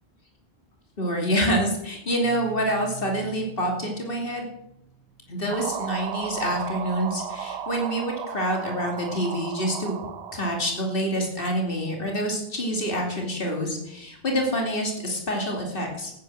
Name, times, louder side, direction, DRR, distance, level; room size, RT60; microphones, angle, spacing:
voice 1, 1.0-4.5 5.3-10.0 10.3-16.1, equal, 60° left, 1 dB, 2.8 m, -27 dB
sound 1, 2.1-5.5, right 5 dB, 45° right, 2.3 m, -45 dB
sound 2, 5.5-10.9, right 8 dB, 85° right, 1.0 m, -34 dB
14.0 x 9.4 x 7.6 m, 0.83 s
omnidirectional pair, 1.0 m